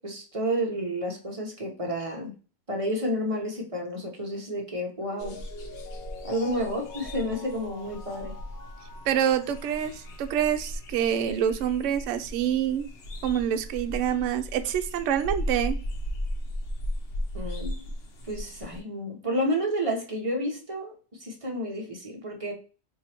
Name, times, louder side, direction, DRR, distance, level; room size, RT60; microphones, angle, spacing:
voice 1, 0.0-2.3 2.7-5.4 6.2-8.3 17.3-17.8 18.3-20.9 21.2-22.5, equal, 30° right, 0 dB, 0.9 m, -30 dB
Mallet percussion, 5.0-10.5 10.9-11.0, left 3 dB, 35° left, 1.4 m, -45 dB
sound 1, 5.2-18.8, equal, 55° left, 0.9 m, -36 dB
voice 2, 9.1-12.9 13.2-15.8, right 9 dB, 70° right, 9 dB, 0.8 m, -26 dB
4.5 x 2.7 x 2.8 m, 0.36 s
omnidirectional pair, 1.4 m